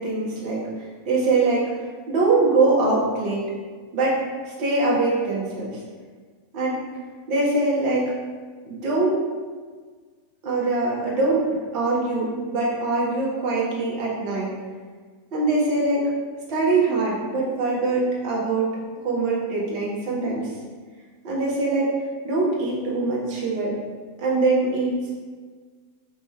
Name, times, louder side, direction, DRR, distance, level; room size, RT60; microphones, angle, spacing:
voice 1, 0.0-1.6 2.1-3.4 3.9-5.7 6.5-6.8 7.3-8.1 8.6-9.2 10.4-11.4 11.7-14.5 15.3-16.1 16.5-18.7 19.0-20.5 21.2-21.9 22.2-23.7 24.2-25.1, right 3 dB, 45° right, -5 dB, 1.3 m, -23 dB
3.3 x 3.1 x 4.4 m, 1.5 s
figure-of-eight pair, 90°, 0 cm